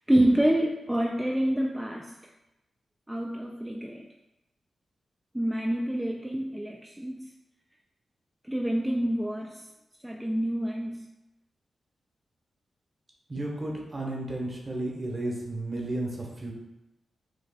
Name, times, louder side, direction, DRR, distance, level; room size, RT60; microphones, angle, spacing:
voice 1, 0.1-2.1 3.1-4.1 5.3-7.3 8.5-9.6 10.0-11.1, right 1 dB, 10° right, 0 dB, 0.3 m, -27 dB
voice 2, 13.3-16.5, right 1 dB, 35° right, -2 dB, 0.9 m, -33 dB
4.8 x 2.4 x 2.3 m, 0.97 s
cardioid pair, 65°, 0 cm